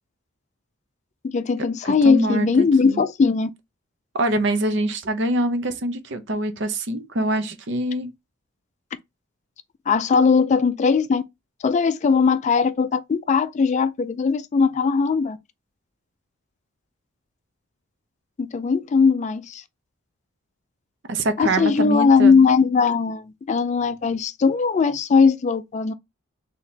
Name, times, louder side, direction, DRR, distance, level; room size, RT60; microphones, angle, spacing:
voice 1, 1.3-3.5 9.9-11.2 11.6-15.4 18.4-19.6 21.4-25.9, left 5 dB, 35° left, 0.3 m, -19 dB
voice 2, 1.8-3.0 4.1-8.1 21.1-22.4, right 1 dB, 60° right, 0.7 m, -24 dB
4.0 x 2.9 x 3.3 m
head